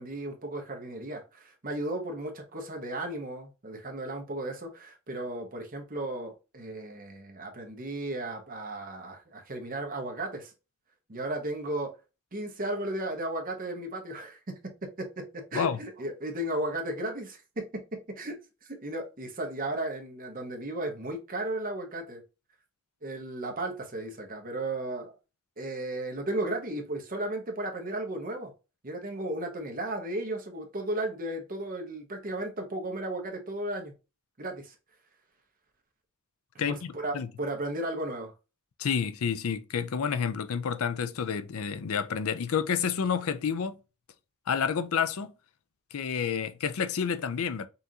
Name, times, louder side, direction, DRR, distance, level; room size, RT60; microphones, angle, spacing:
voice 1, 0.0-10.5 11.1-12.0 12.3-22.2 23.0-25.1 25.6-28.5 28.8-33.9 34.4-34.7 36.7-38.3, right 1 dB, 40° right, 1.0 m, -35 dB
voice 2, 36.6-37.3 38.8-43.8 44.5-45.3 45.9-47.7, left 7 dB, 75° left, 0.5 m, -29 dB
5.5 x 2.5 x 2.8 m
head